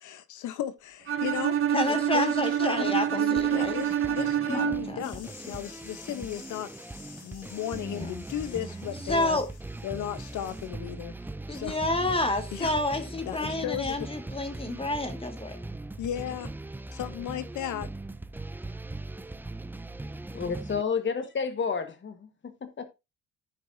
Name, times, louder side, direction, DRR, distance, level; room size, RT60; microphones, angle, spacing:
voice 1, 0.0-1.6 1.9-6.7 7.2-9.4 9.8-11.1 11.5-11.8 12.5-12.8 13.3-14.1 16.0-16.5 16.9-17.9, left 11 dB, 80° left, 0.9 m, -35 dB
Bowed string instrument, 1.1-5.1, right 10 dB, 45° right, 0.7 m, -27 dB
voice 2, 1.7-3.8 4.0-4.1 4.5-5.1 5.4-5.6 7.9-8.1 9.1-9.5 11.5-15.6, left 2 dB, 20° left, 1.8 m, -29 dB
sound 1, 3.4-20.8, right 2 dB, 5° right, 0.4 m, -40 dB
sound 2, 5.0-10.7, left 5 dB, 55° left, 1.9 m, -51 dB
voice 3, 20.3-22.9, left 6 dB, 40° left, 1.5 m, -31 dB
13.5 x 4.7 x 2.6 m
cardioid pair, 90°, 30 cm